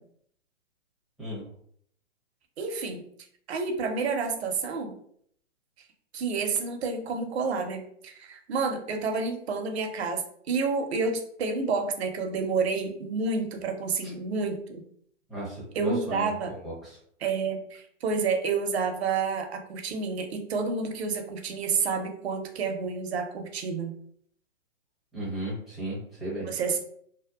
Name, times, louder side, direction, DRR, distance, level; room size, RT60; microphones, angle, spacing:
voice 1, 2.6-3.0 3.5-5.0 6.1-14.8 15.7-16.5 17.2-24.0 26.4-26.8, right 4 dB, 60° right, 5 dB, 0.6 m, -29 dB
voice 2, 15.3-17.0 25.1-26.5, right 1 dB, ahead, -9 dB, 0.5 m, -35 dB
2.7 x 2.1 x 2.3 m, 0.64 s
hypercardioid pair, 140°, 37 cm